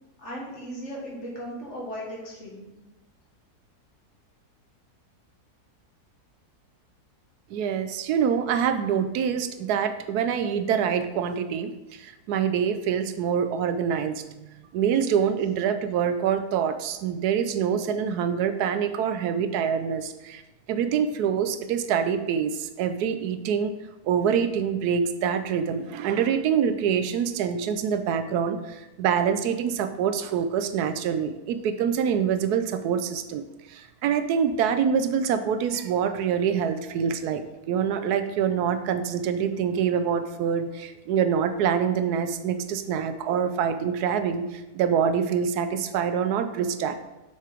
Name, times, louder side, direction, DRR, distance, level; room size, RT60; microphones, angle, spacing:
voice 1, 0.2-2.7, equal, 50° left, -3 dB, 1.9 m, -37 dB
voice 2, 7.5-14.2 14.7-20.4 20.7-23.7 24.0-37.4 37.7-47.0, right 7 dB, 80° right, 10 dB, 1.1 m, -25 dB
7.3 x 6.0 x 3.5 m, 1.0 s
omnidirectional pair, 1.7 m